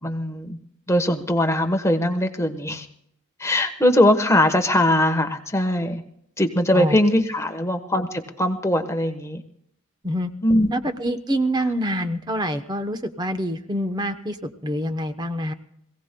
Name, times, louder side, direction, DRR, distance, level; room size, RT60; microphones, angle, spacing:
voice 1, 0.0-0.6 0.9-2.9 3.4-6.0 6.4-9.4 10.4-10.7, left 1 dB, 15° left, 5 dB, 1.1 m, -21 dB
voice 2, 10.7-15.5, equal, 20° right, 9 dB, 0.9 m, -26 dB
26.0 x 17.0 x 2.2 m, 0.75 s
head